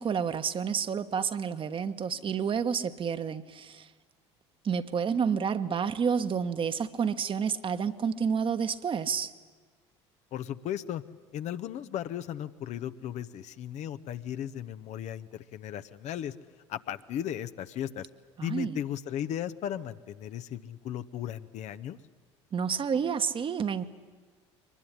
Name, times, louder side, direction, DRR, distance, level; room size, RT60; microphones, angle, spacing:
voice 1, 0.0-3.9 4.6-9.3 18.4-18.8 22.5-23.8, right 6 dB, 35° right, 10 dB, 1.3 m, -29 dB
voice 2, 10.3-11.0 11.3-16.3 16.7-18.1 18.4-22.0, left 10 dB, 50° left, 11 dB, 1.0 m, -36 dB
23.0 x 20.0 x 10.0 m, 1.5 s
figure-of-eight pair, 60°, 15 cm